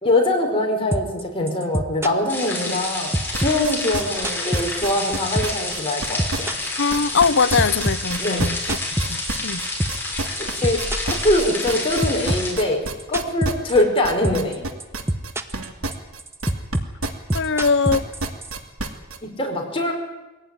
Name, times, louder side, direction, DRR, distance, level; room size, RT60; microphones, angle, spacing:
voice 1, 0.0-6.6 8.2-8.5 10.4-14.7 19.2-19.9, left 1 dB, 25° left, 1 dB, 5.0 m, -23 dB
sound 1, 0.9-1.2 1.5-2.9 3.1-5.1 5.4-5.7 5.9-10.1 10.4-11.8 12.0-14.0 14.2-14.5 14.8-15.7 15.9-18.5, right 1 dB, 10° right, 1.1 m, -25 dB
sound 2, 2.3-12.5, left 2 dB, 10° left, 5.8 m, -29 dB
sound 3, 3.3-7.2 7.5-16.8 17.0-19.2, right 3 dB, 75° right, 2.7 m, -29 dB
voice 2, 6.8-8.6 9.1-9.6 17.3-18.0, left 5 dB, 60° left, 13 dB, 0.8 m, -21 dB
22.5 x 17.0 x 9.8 m, 1.1 s
head